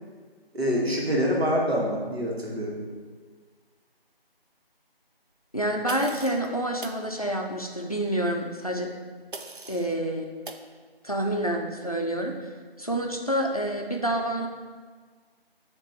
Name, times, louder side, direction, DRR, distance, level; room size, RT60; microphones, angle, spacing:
voice 1, 0.5-2.8, equal, 85° right, -3 dB, 1.7 m, -26 dB
voice 2, 5.5-8.9 9.7-10.3 11.0-12.5 12.8-14.5, right 1 dB, 40° left, 2 dB, 0.5 m, -28 dB
sound 1, 5.9-6.5 6.8-7.0 9.3-9.9 10.5-10.7, right 3 dB, 60° right, 0.5 m, -40 dB
6.8 x 3.0 x 4.6 m, 1.5 s
figure-of-eight pair, 180°, 30 cm